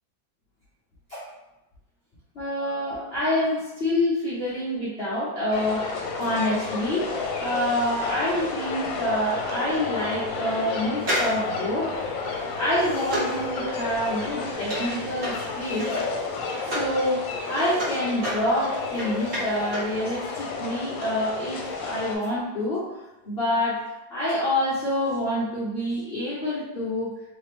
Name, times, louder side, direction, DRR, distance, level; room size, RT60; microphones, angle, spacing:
voice 1, 2.3-7.1 7.4-11.9 12.6-16.0 16.7-17.2 17.5-22.9 23.2-23.8 24.1-27.1, left 1 dB, 40° left, -10 dB, 0.9 m, -27 dB
sound 1, 5.5-22.1, left 4 dB, 75° left, 1.4 m, -32 dB
sound 2, 11.0-17.0 17.3-20.0 20.2-20.3, equal, 40° right, 1.9 m, -32 dB
3.9 x 3.1 x 3.3 m, 0.96 s
omnidirectional pair, 2.1 m